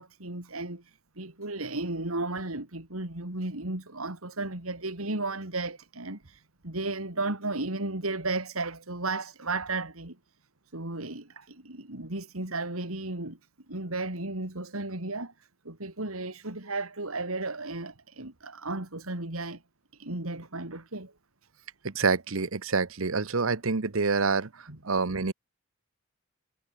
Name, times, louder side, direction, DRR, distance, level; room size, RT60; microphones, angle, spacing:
voice 1, 0.0-10.2 10.7-13.4 13.7-15.3 15.7-19.6 19.9-21.1 24.7-24.8, right 2 dB, 85° right, 3.6 m, -34 dB
voice 2, 21.8-25.3, right 4 dB, 70° right, 1.0 m, -27 dB
head